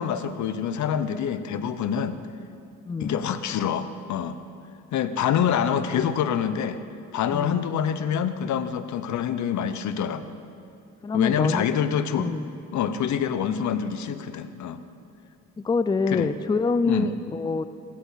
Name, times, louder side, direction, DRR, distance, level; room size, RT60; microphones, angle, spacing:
voice 1, 0.0-2.2 3.0-4.4 4.9-6.8 7.1-10.3 11.1-12.3 12.7-14.8 16.1-16.3 16.8-17.1, left 8 dB, 70° left, 11 dB, 0.8 m, -26 dB
voice 2, 7.3-7.6 11.0-11.7 12.2-12.5 15.6-17.6, left 4 dB, 15° left, 12 dB, 0.4 m, -26 dB
15.5 x 13.0 x 4.1 m, 2.5 s
cardioid pair, 90°, 30 cm